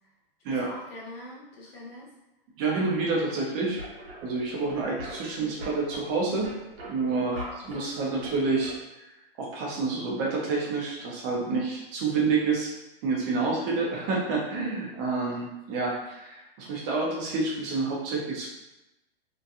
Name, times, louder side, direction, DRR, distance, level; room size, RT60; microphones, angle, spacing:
voice 1, 0.5-2.1 7.1-7.9 15.3-15.4, left 1 dB, 75° left, -4 dB, 1.1 m, -43 dB
voice 2, 2.6-3.8 4.2-6.5 6.9-7.4 7.7-8.8 9.4-12.7 13.0-18.5, right 3 dB, 20° right, -3 dB, 0.3 m, -28 dB
sound 1, 3.6-8.8, equal, 75° right, 0.9 m, -43 dB
2.8 x 2.1 x 2.4 m, 0.96 s
hypercardioid pair, 140°, 30 cm